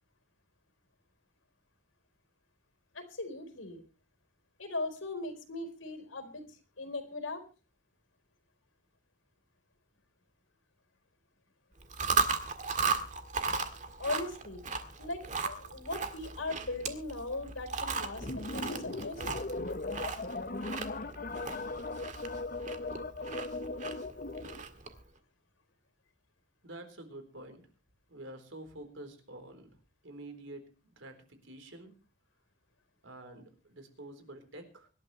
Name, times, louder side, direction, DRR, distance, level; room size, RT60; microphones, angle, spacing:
voice 1, 2.9-3.8 4.6-6.4 6.8-7.4 14.0-14.6 15.0-19.2, left 2 dB, 90° left, 7 dB, 4.2 m, -39 dB
Chewing mastication, 11.8-25.0, right 5 dB, 40° right, 1.8 m, -36 dB
sound 1, 18.2-24.6, left 2 dB, 45° left, 0.9 m, -38 dB
voice 2, 26.6-27.6 28.1-29.8 30.0-31.9 33.0-34.9, right 1 dB, 80° right, 6 dB, 4.0 m, -48 dB
24.5 x 12.0 x 3.2 m, 0.34 s
head